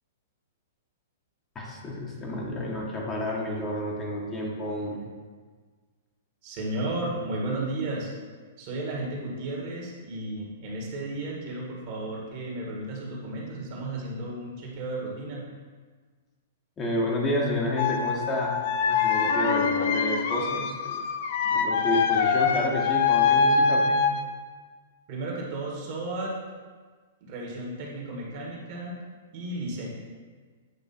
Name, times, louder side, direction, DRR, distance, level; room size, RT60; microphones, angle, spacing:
voice 1, 1.5-5.0 16.8-21.0 21.4-24.1, left 1 dB, 20° left, -3 dB, 1.1 m, -30 dB
voice 2, 6.4-8.1 8.6-15.4 25.1-26.4 27.2-29.0 29.3-29.9, right 2 dB, 50° right, -3 dB, 1.6 m, -33 dB
sound 1, 17.8-24.2, left 5 dB, 55° left, 0.5 m, -24 dB
8.3 x 3.0 x 4.2 m, 1.5 s
hypercardioid pair, 120°, 0 cm